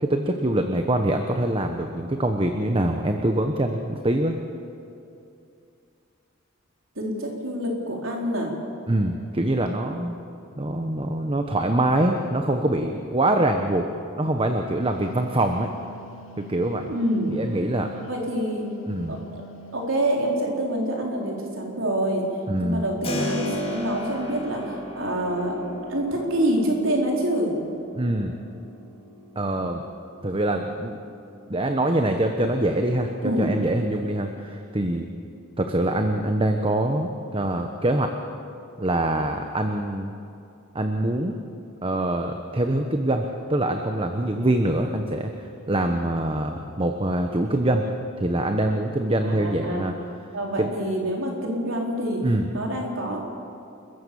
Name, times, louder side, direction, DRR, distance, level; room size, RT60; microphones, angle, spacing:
voice 1, 0.0-4.4 8.9-10.2 10.6-13.9 14.2-15.7 16.4-16.9 17.3-17.9 18.9-19.2 22.5-22.8 27.9-28.3 29.3-29.8 30.2-31.0 31.5-35.1 35.6-38.1 38.8-40.1 40.7-41.4 41.8-45.3 45.7-47.9 48.2-49.9 50.6-50.7 52.2-52.5, right 1 dB, 25° right, 5 dB, 1.1 m, -24 dB
voice 2, 7.0-8.5 16.9-17.4 18.1-18.7 19.1-19.4 19.7-22.3 22.6-25.6 25.9-27.6 33.2-33.5 49.2-49.8 50.3-52.2 52.5-53.2, right 1 dB, 70° right, 0 dB, 4.3 m, -26 dB
Wind instrument woodwind instrument, 15.0-20.3, left 1 dB, 75° left, 1.2 m, -46 dB
Keyboard (musical), 23.0-33.7, equal, 30° left, 2.5 m, -37 dB
29.5 x 14.5 x 7.1 m, 2.6 s
head